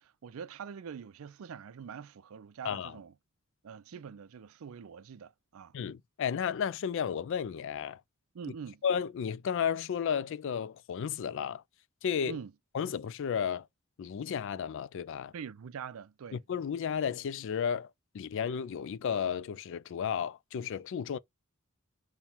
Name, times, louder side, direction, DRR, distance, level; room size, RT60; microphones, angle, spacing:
voice 1, 0.0-3.1 3.6-5.7 8.3-8.8 12.3-12.5 15.3-16.4, right 6 dB, 75° right, 0.4 m, -44 dB
voice 2, 2.6-3.0 5.7-8.0 8.8-11.6 12.0-12.4 12.7-13.7 14.0-15.3 16.3-17.9 18.1-21.2, left 7 dB, 60° left, 0.3 m, -33 dB
5.4 x 2.2 x 4.4 m
head